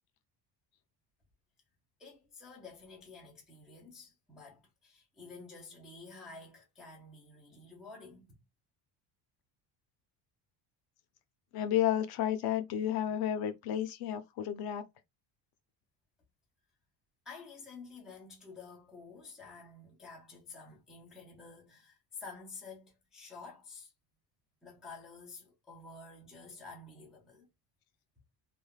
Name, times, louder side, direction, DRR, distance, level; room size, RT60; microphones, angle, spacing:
voice 1, 2.0-8.4 17.3-23.9 24.6-27.5, left 4 dB, ahead, 0.3 m, -50 dB
voice 2, 11.5-14.9, left 11 dB, 55° left, 0.5 m, -32 dB
3.3 x 2.1 x 2.2 m
cardioid pair, 180°, 44 cm